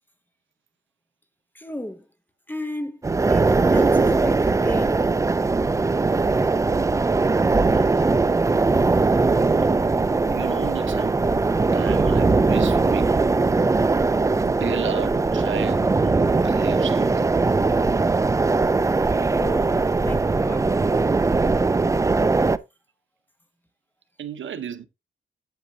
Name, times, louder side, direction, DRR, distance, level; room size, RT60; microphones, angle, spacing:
voice 1, 1.5-2.1 2.5-3.0 3.3-5.1 8.0-8.1 19.4-20.8, left 1 dB, 10° left, 0.9 m, -33 dB
sound 1, 3.0-22.6, right 3 dB, 15° right, 0.4 m, -20 dB
voice 2, 10.3-11.2 11.7-13.1 14.4-16.1 16.4-17.3 24.2-24.9, right 8 dB, 75° right, 0.9 m, -34 dB
8.2 x 8.1 x 2.8 m
wide cardioid pair, 160°, 20 cm